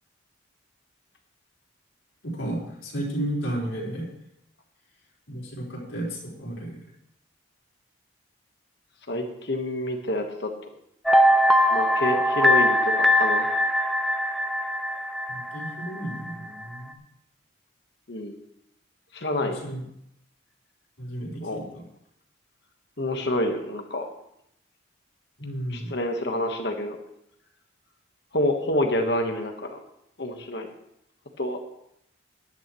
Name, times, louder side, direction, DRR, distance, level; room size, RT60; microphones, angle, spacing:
voice 1, 2.2-4.1 5.3-6.9 15.3-17.0 19.4-19.8 21.0-21.8 25.4-26.0, right 1 dB, 85° left, -4 dB, 4.3 m, -33 dB
voice 2, 9.1-10.5 11.7-13.5 18.1-18.4 19.1-19.6 21.4-21.6 23.0-24.1 25.7-27.0 28.3-29.8 30.2-30.7 31.4-31.6, left 1 dB, 55° left, 4 dB, 1.3 m, -27 dB
sound 1, 11.1-16.3 16.6-16.8, left 1 dB, ahead, 0.6 m, -22 dB
16.0 x 11.0 x 3.1 m, 0.76 s
head